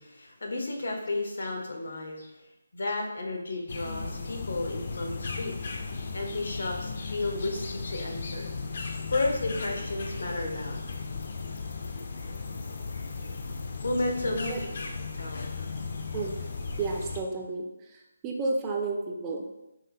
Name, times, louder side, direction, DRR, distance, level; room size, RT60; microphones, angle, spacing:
voice 1, 0.0-2.3 2.7-5.7 6.1-8.5 8.8-10.9 13.1-13.3 13.6-14.5 15.1-15.9, left 2 dB, 75° left, 2 dB, 1.0 m, -33 dB
sound 1, 3.7-17.2, left 4 dB, 50° left, 0.5 m, -36 dB
voice 2, 14.2-14.6 16.1-16.4 16.8-19.5, right 3 dB, 15° right, 1 dB, 0.4 m, -32 dB
5.4 x 3.0 x 2.9 m, 0.93 s
hypercardioid pair, 170°, 0 cm